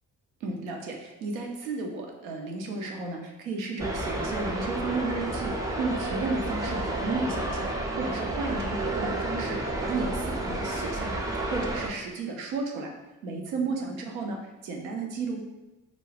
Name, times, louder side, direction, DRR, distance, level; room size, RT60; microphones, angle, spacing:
voice 1, 0.4-11.2 11.5-12.9 13.2-15.4, right 3 dB, 90° right, 1 dB, 0.5 m, -33 dB
sound 1, 3.8-11.9, right 2 dB, 10° right, 0.4 m, -31 dB
2.4 x 2.1 x 3.2 m, 1.0 s
hypercardioid pair, 45°, 40 cm